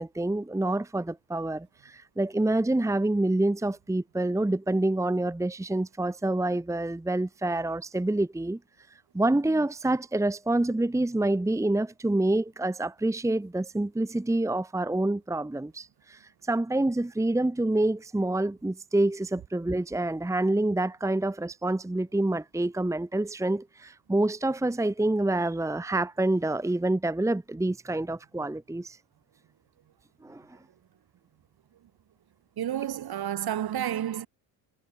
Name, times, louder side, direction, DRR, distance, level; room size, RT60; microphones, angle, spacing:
voice 1, 0.0-8.6 9.1-29.0 30.2-30.6, right 2 dB, 5° right, 1.3 m, -27 dB
voice 2, 32.6-34.3, right 11 dB, 50° right, 3.4 m, -30 dB
hypercardioid pair, 70°, 48 cm